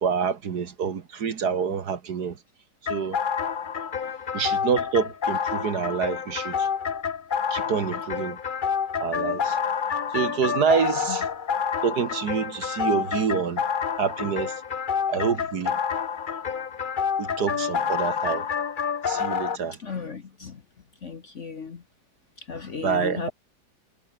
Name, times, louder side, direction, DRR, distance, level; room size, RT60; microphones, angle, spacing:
voice 1, 0.0-2.4 2.9-3.2 4.3-6.7 7.5-8.4 9.0-9.6 10.1-11.3 11.8-13.6 14.0-14.5 15.1-15.8 17.2-18.5 19.1-19.8 22.8-23.3, right 6 dB, 55° right, 1.9 m, -27 dB
sound 1, 2.9-19.6, left 7 dB, 90° left, 0.4 m, -28 dB
voice 2, 19.8-20.6 21.0-21.8 22.5-23.3, left 5 dB, 40° left, 1.3 m, -35 dB
omnidirectional pair, 2.2 m